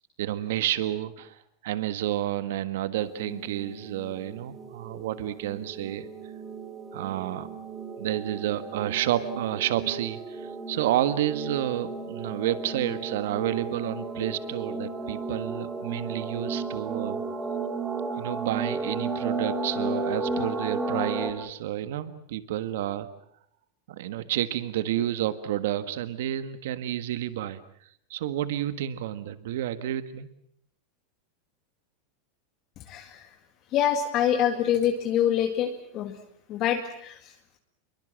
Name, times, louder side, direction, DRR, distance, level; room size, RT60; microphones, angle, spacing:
voice 1, 0.2-6.1 6.9-7.5 7.9-17.2 18.2-23.1 23.9-30.3, right 12 dB, 70° right, 13 dB, 1.6 m, -30 dB
sound 1, 3.0-21.3, right 3 dB, 15° right, 3.0 m, -34 dB
voice 2, 32.8-33.4 33.7-36.2 36.5-37.6, left 9 dB, 35° left, 5 dB, 2.0 m, -26 dB
27.5 x 23.0 x 7.7 m, 0.67 s
supercardioid pair, 165°, 0 cm